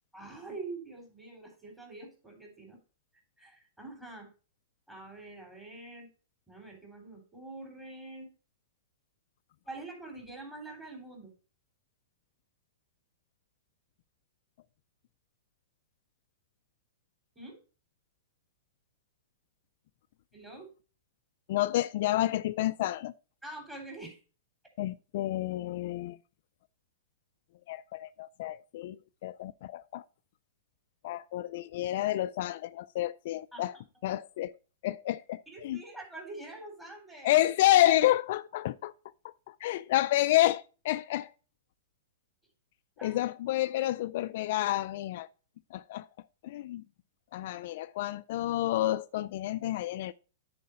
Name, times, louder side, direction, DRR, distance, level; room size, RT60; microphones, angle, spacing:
voice 1, 0.1-2.8 3.4-4.3 4.9-6.1 6.5-8.3 9.7-11.3 17.4-17.6 20.3-20.7 23.4-24.2 33.5-33.7 35.5-37.3 43.0-43.2, right 2 dB, 10° right, 3.8 m, -45 dB
voice 2, 21.5-23.1 24.8-26.2 27.7-30.0 31.0-33.8 34.0-34.5 34.8-35.8 37.2-38.9 39.2-41.3 43.0-45.3 45.7-46.1 46.4-46.8 47.3-50.1, left 14 dB, 60° left, 0.3 m, -29 dB
9.4 x 4.7 x 5.2 m
hypercardioid pair, 125°, 0 cm